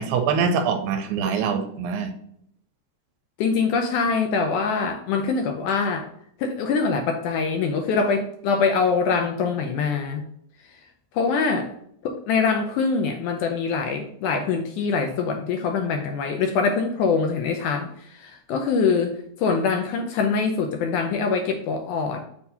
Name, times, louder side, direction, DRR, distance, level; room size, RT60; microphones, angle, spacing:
voice 1, 0.0-2.1, right 6 dB, 85° right, 6 dB, 2.4 m, -24 dB
voice 2, 3.4-6.1 6.4-10.2 10.6-10.8 11.1-11.7 12.0-22.2, left 5 dB, 80° left, 4 dB, 1.8 m, -24 dB
6.6 x 2.8 x 5.5 m, 0.68 s
omnidirectional pair, 4.1 m